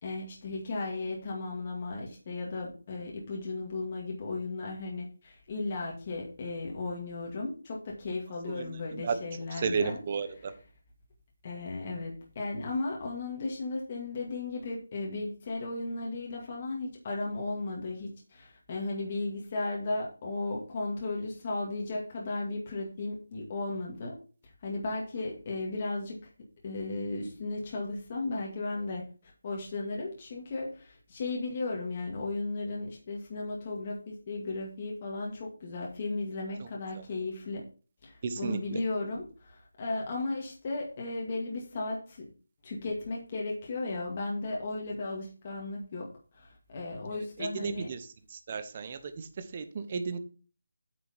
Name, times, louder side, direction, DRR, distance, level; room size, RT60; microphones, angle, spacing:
voice 1, 0.0-10.0 10.3-10.6 11.4-24.2 24.6-26.2 26.6-37.6 38.0-42.2 42.6-46.1 46.3-47.9, left 2 dB, 25° left, -2 dB, 2.1 m, -35 dB
voice 2, 9.6-10.5 38.2-38.8 47.4-48.0 48.5-49.0 49.5-50.2, right 5 dB, 25° right, 10 dB, 1.1 m, -32 dB
8.6 x 6.9 x 4.4 m, 0.36 s
figure-of-eight pair, 175°, 0 cm